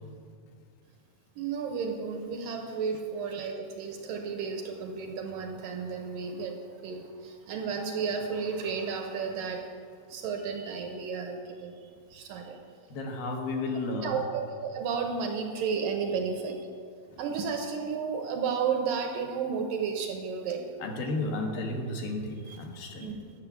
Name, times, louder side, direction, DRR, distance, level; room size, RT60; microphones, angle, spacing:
voice 1, 1.4-9.7 10.1-11.7 12.1-12.6 14.0-16.7 17.2-20.6 22.5-22.6 23.0-23.2, right 6 dB, 75° right, 4 dB, 2.1 m, -32 dB
voice 2, 12.9-14.2 20.8-23.2, left 2 dB, 70° left, 1 dB, 2.8 m, -33 dB
11.0 x 6.4 x 8.1 m, 2.1 s
omnidirectional pair, 4.4 m